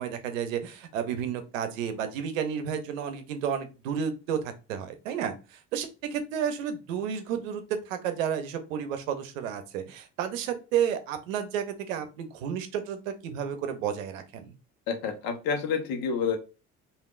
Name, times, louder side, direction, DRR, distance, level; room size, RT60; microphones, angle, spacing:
voice 1, 0.0-14.5, right 8 dB, 90° right, 9 dB, 0.6 m, -32 dB
voice 2, 14.9-16.4, left 6 dB, 65° left, 5 dB, 1.0 m, -28 dB
3.4 x 2.6 x 2.4 m, 0.31 s
hypercardioid pair, 70°, 38 cm